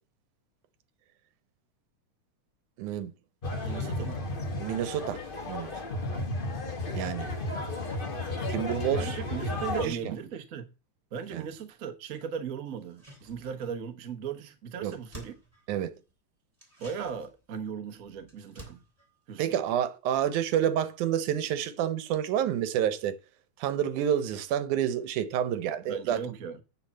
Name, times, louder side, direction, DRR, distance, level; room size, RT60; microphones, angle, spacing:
voice 1, 2.8-3.1 4.6-5.2 5.5-5.7 6.9-7.3 8.5-9.2 9.8-10.1 11.3-11.4 14.8-14.9 15.7-16.0 19.4-23.2 23.6-26.2, right 10 dB, 90° right, 2.4 m, -29 dB
sound 1, 3.4-9.8, left 2 dB, 60° left, 0.5 m, -33 dB
voice 2, 3.6-4.2 6.1-6.3 8.9-10.7 11.1-15.3 16.8-18.8 19.3-19.4 25.9-26.6, right 7 dB, 70° right, 0.7 m, -37 dB
sound 2, 12.8-13.9 14.2-14.3 14.6-16.1 16.5-20.3 20.6-20.7, right 1 dB, 10° right, 2.9 m, -52 dB
9.0 x 4.9 x 7.3 m
omnidirectional pair, 3.4 m